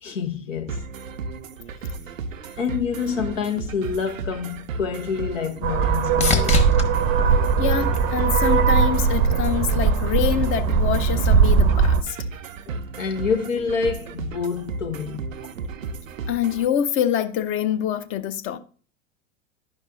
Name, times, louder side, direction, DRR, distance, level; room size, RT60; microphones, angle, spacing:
voice 1, 0.0-0.8 2.6-6.6 12.7-15.2, left 6 dB, 75° left, 1.2 m, -27 dB
sound 1, 0.7-16.7, right 4 dB, 80° right, 0.6 m, -34 dB
sound 2, 4.5-8.7 9.2-9.8 17.6-17.7, left 5 dB, 15° left, 1.1 m, -29 dB
sound 3, 5.6-12.0, right 5 dB, 35° right, 0.6 m, -19 dB
voice 2, 7.6-12.2 16.3-18.6, left 9 dB, 35° left, 0.6 m, -25 dB
11.0 x 5.4 x 2.4 m
figure-of-eight pair, 90°, 39 cm